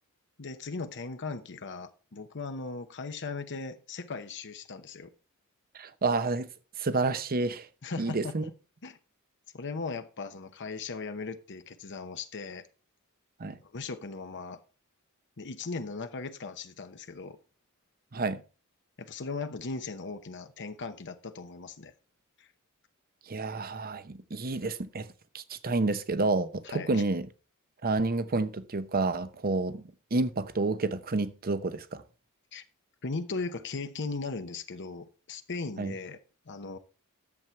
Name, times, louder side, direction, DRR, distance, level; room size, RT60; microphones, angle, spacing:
voice 1, 0.4-5.1 7.8-8.3 8.8-9.0 9.5-12.7 13.6-14.6 15.4-17.4 19.0-21.9 22.4-22.5 26.6-27.0 32.5-32.6 33.0-36.2 36.5-36.8, left 4 dB, 55° left, 0.9 m, -38 dB
voice 2, 5.7-6.5 6.8-7.7 8.0-8.4 13.4-13.6 18.1-18.4 23.3-25.1 25.3-27.3 27.8-29.8 30.1-32.0 35.8-35.9, right 3 dB, 45° right, 0.8 m, -29 dB
11.0 x 7.4 x 4.5 m
head